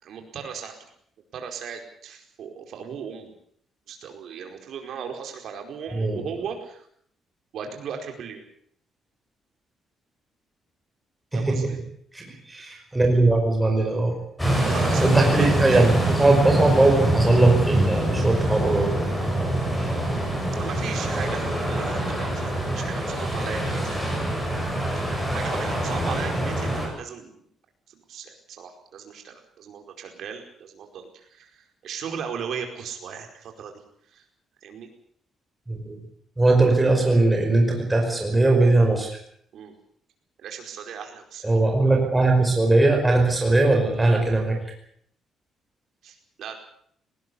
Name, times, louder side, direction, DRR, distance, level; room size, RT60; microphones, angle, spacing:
voice 1, 0.0-0.7 1.3-3.3 3.9-6.9 7.5-8.4 11.3-11.8 14.6-15.8 20.6-24.0 25.3-27.4 27.9-33.7 34.1-34.2 34.6-34.9 39.5-39.8 40.4-41.6 46.0-46.5, right 7 dB, 60° right, 4 dB, 4.9 m, -37 dB
voice 2, 12.1-14.1 15.0-19.1 35.7-36.0 36.4-39.1 41.4-44.6, right 2 dB, 10° right, 2 dB, 5.1 m, -20 dB
sound 1, 14.4-26.9, right 1 dB, 5° left, 7.4 m, -25 dB
19.0 x 19.0 x 8.4 m, 0.66 s
cardioid pair, 165°, 0 cm